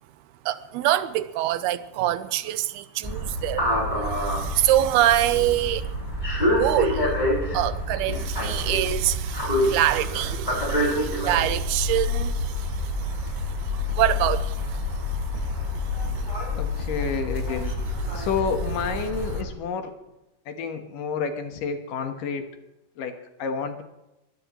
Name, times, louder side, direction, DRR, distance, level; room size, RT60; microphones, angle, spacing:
voice 1, 0.5-5.9 6.4-7.1 7.5-16.5 18.1-18.3, right 13 dB, 85° right, 2.7 m, -26 dB
sound 1, 3.0-19.4, left 1 dB, 10° left, 6.6 m, -27 dB
voice 2, 16.6-17.7 18.1-19.9 20.5-22.5 23.0-23.1 23.4-23.8, left 5 dB, 65° left, 2.7 m, -29 dB
23.5 x 18.5 x 3.1 m
omnidirectional pair, 4.5 m